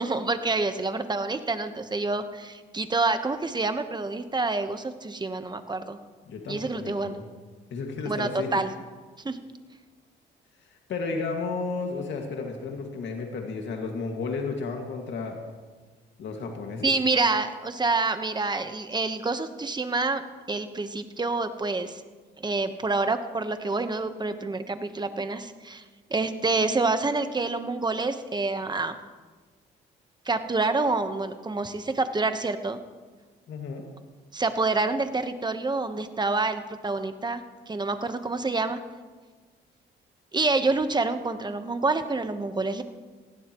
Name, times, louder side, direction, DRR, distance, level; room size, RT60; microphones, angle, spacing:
voice 1, 0.0-6.0 6.5-7.2 8.0-8.7 9.2-9.4 16.8-20.2 20.5-22.0 22.4-25.8 26.1-28.9 30.3-32.8 34.3-38.8 40.3-42.8, right 3 dB, 20° right, 9 dB, 1.1 m, -27 dB
voice 2, 6.3-7.2 7.7-8.5 10.9-15.4 16.2-16.9 33.5-33.9, left 4 dB, 65° left, 2 dB, 2.1 m, -32 dB
19.0 x 16.0 x 3.1 m, 1.4 s
cardioid pair, 90°, 20 cm